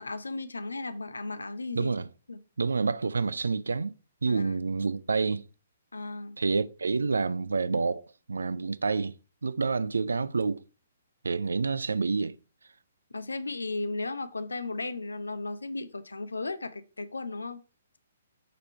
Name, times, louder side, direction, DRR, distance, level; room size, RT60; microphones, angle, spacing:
voice 1, 0.0-1.9 2.3-2.4 4.3-4.5 5.9-6.4 13.1-17.6, left 3 dB, 75° left, 0.7 m, -35 dB
voice 2, 1.8-2.1 2.6-3.9 4.2-5.4 6.4-9.2 9.4-10.6 11.2-12.4, right 4 dB, 70° right, 0.4 m, -28 dB
7.6 x 3.7 x 4.4 m
figure-of-eight pair, 125°, 0 cm